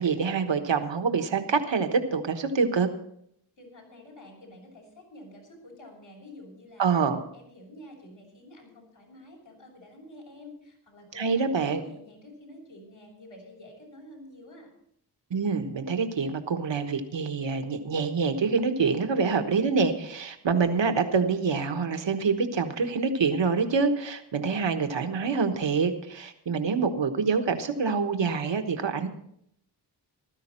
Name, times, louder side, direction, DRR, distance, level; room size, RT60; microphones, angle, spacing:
voice 1, 0.0-2.9 6.8-7.2 11.1-11.8 15.3-29.1, right 5 dB, 80° right, 7 dB, 1.3 m, -26 dB
voice 2, 3.6-7.0 7.3-14.7, left 1 dB, 85° left, -2 dB, 6.7 m, -49 dB
15.5 x 13.0 x 4.4 m, 0.72 s
wide cardioid pair, 70°, 44 cm